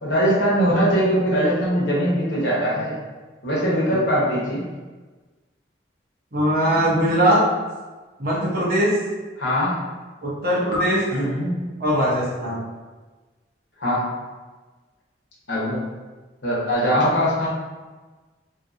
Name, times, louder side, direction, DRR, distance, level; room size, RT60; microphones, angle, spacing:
voice 1, 0.0-3.0 3.4-4.7 9.4-9.8 11.1-11.7 13.8-14.1 15.5-15.8 16.4-17.5, equal, 80° left, -6 dB, 1.0 m, -21 dB
voice 2, 6.3-7.4 8.2-9.0 10.2-11.0 11.8-12.6, equal, 50° right, -7 dB, 0.9 m, -20 dB
2.8 x 2.7 x 2.5 m, 1.3 s
head